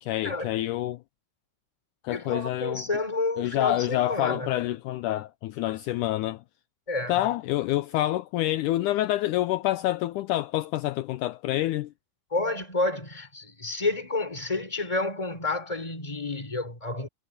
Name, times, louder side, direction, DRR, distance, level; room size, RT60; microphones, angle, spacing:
voice 1, 0.0-1.0 2.0-2.8 3.4-6.4 7.1-11.9, left 15 dB, 85° left, 1.8 m, -27 dB
voice 2, 2.1-4.5 6.9-7.2 12.3-17.1, left 2 dB, 10° left, 3.3 m, -30 dB
omnidirectional pair, 4.3 m